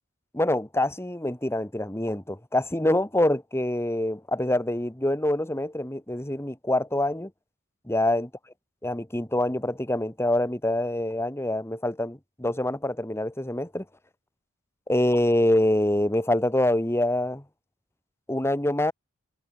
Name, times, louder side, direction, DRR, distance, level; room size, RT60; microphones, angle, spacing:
voice 1, 0.3-7.3 7.9-8.3 8.8-13.8 14.9-17.4 18.3-18.9, left 1 dB, 10° left, 1.6 m, -25 dB
head